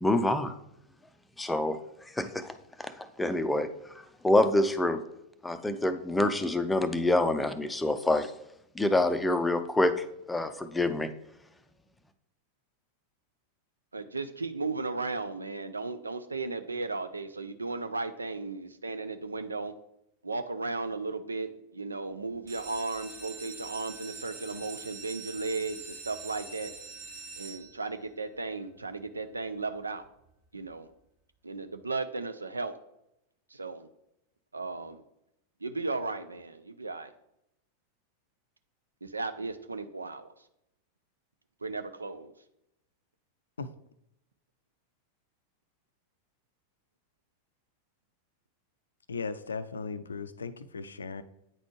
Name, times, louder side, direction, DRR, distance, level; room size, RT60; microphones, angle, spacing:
voice 1, 0.0-0.5 1.4-2.5 2.8-3.9 4.2-5.0 5.4-8.3 8.7-11.1, left 1 dB, 10° left, 10 dB, 0.5 m, -27 dB
voice 2, 13.9-19.7 20.2-26.7 27.4-30.0 30.5-30.9 31.4-32.7 33.5-33.9 34.5-35.0 35.6-37.1 39.0-40.3 41.6-42.3, right 3 dB, 80° right, 10 dB, 0.4 m, -35 dB
sound 1, 22.3-28.1 28.7-29.2 29.6-29.7 29.9-30.0 30.4-30.6, right 4 dB, 45° right, 2.0 m, -44 dB
voice 3, 49.1-51.2, left 4 dB, 70° left, 13 dB, 0.4 m, -37 dB
8.9 x 4.1 x 3.1 m, 0.81 s
figure-of-eight pair, 90°, 0 cm